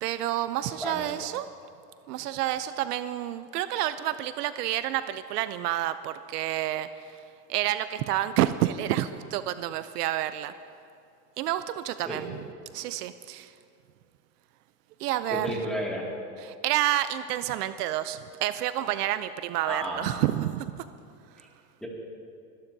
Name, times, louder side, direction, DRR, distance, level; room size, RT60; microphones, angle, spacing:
voice 1, 0.0-1.5 2.1-7.1 7.5-10.5 11.4-12.5 12.7-13.5 15.0-15.7 16.4-20.9, right 13 dB, 70° right, 13 dB, 0.6 m, -29 dB
voice 2, 15.3-16.0 19.6-20.0 21.8-21.9, equal, ahead, -3 dB, 2.2 m, -32 dB
22.0 x 12.0 x 2.7 m, 2.4 s
supercardioid pair, 140°, 49 cm